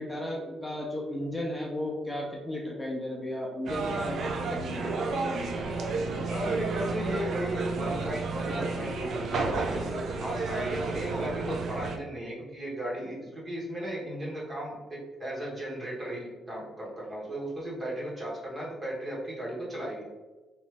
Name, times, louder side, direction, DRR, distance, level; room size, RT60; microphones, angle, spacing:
voice 1, 0.0-5.0, left 1 dB, 5° left, -3 dB, 0.6 m, -34 dB
sound 1, 3.7-12.0, right 3 dB, 60° right, 0.4 m, -31 dB
voice 2, 6.3-20.0, right 1 dB, 30° right, -4 dB, 1.4 m, -35 dB
3.1 x 2.6 x 3.3 m, 1.2 s
cardioid pair, 90°, 0 cm